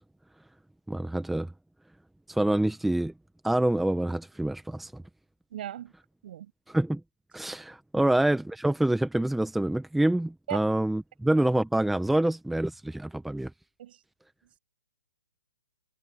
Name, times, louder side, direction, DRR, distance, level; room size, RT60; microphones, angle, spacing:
voice 1, 0.9-1.5 2.4-3.1 3.4-4.9 6.7-7.0 7.3-12.7 13.2-13.5, right 1 dB, ahead, 1.2 m, -26 dB
voice 2, 5.5-5.9 6.2-6.5 10.5-10.6 13.8-14.0, right 11 dB, 55° right, 6.4 m, -37 dB
hypercardioid pair, 135°, 6 cm